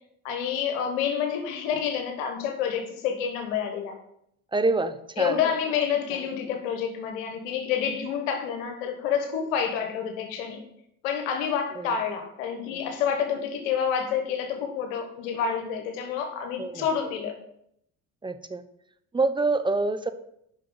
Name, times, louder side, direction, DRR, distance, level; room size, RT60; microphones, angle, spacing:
voice 1, 0.2-3.9 5.2-10.6 11.0-17.3, left 7 dB, 80° left, 4 dB, 1.2 m, -28 dB
voice 2, 4.5-5.4 11.8-12.0 16.6-16.9 18.2-18.6 19.1-20.1, right 3 dB, 10° right, 11 dB, 0.7 m, -26 dB
6.8 x 5.6 x 5.4 m, 0.74 s
hypercardioid pair, 65°, 39 cm